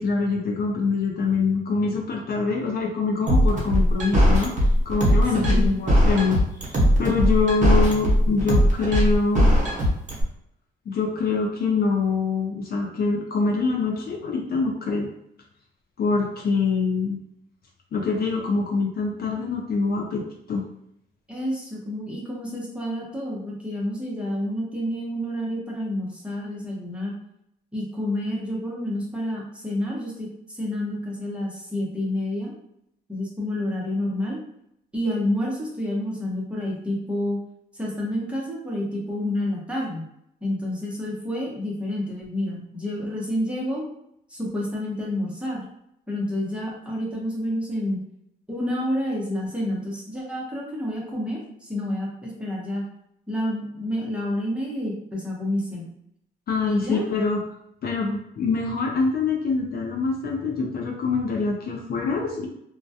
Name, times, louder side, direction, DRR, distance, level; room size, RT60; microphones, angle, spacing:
voice 1, 0.0-4.5 4.9-6.4 6.7-9.6 10.9-15.1 16.0-17.2 17.9-20.6 56.5-57.4 57.8-62.5, left 4 dB, 50° left, 0 dB, 0.5 m, -24 dB
sound 1, 3.3-10.2, equal, 40° right, 0.9 m, -18 dB
voice 2, 5.3-5.8 21.3-27.1 27.7-32.5 33.1-34.4 34.9-37.4 37.7-40.1 40.4-43.8 44.3-45.7 46.1-48.0 48.5-52.8 53.3-55.9 56.7-57.1, left 1 dB, 5° right, -4 dB, 0.8 m, -29 dB
2.2 x 2.2 x 2.7 m, 0.78 s
cardioid pair, 90°, 20 cm